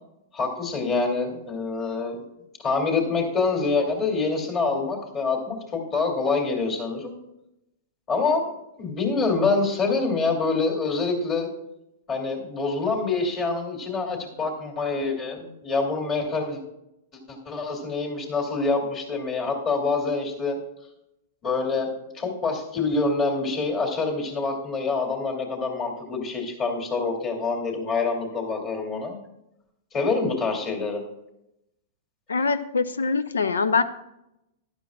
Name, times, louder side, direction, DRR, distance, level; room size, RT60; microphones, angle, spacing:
voice 1, 0.3-2.2 2.6-7.2 8.1-8.5 8.8-11.5 12.1-16.6 17.3-20.6 21.4-29.2 29.9-31.0, left 4 dB, 30° left, 1 dB, 2.8 m, -26 dB
voice 2, 32.3-33.8, left 4 dB, 90° left, 14 dB, 0.6 m, -23 dB
12.5 x 11.0 x 2.4 m, 0.87 s
hypercardioid pair, 115°, 0 cm